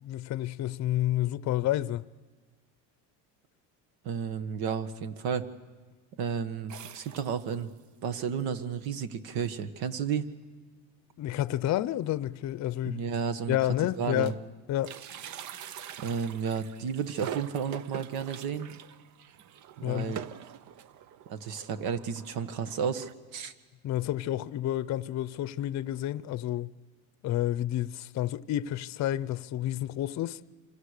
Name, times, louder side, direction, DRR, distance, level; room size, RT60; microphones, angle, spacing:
voice 1, 0.0-2.0 11.2-13.0 13.5-14.4 14.7-15.0 19.8-20.1 23.8-26.7 27.2-30.4, left 13 dB, 45° left, 0.7 m, -30 dB
voice 2, 4.0-5.4 6.2-7.7 8.0-10.3 12.8-13.6 14.0-14.3 16.0-18.7 19.8-20.2 21.3-23.5, right 7 dB, 65° right, 1.7 m, -32 dB
sound 1, 6.7-7.9 8.4-8.5 8.7-8.8 9.7-9.8 10.2-10.4 10.7-10.8 12.1-12.2 12.8-12.9 13.3-14.5 14.7-23.1, right 10 dB, 45° right, 0.7 m, -45 dB
27.0 x 26.5 x 6.7 m
cardioid pair, 115°, 40 cm